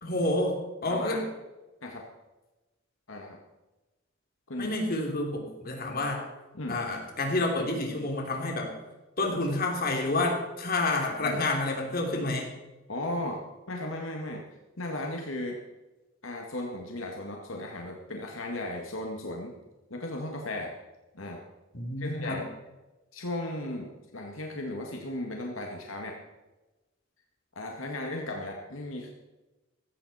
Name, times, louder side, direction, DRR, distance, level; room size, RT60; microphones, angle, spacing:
voice 1, 0.0-1.3 4.6-6.2 6.7-8.7 9.2-12.5 21.7-22.4, left 2 dB, 45° left, 1 dB, 3.1 m, -29 dB
voice 2, 0.9-1.2 1.8-2.0 3.1-3.4 4.5-4.7 6.5-6.8 11.2-11.4 12.9-13.4 13.7-14.4 14.8-15.6 16.2-19.5 19.9-20.7 21.1-21.4 22.0-22.5 23.1-26.2 27.6-29.1, left 1 dB, 75° left, 1 dB, 2.0 m, -36 dB
16.5 x 14.0 x 4.3 m, 1.1 s
head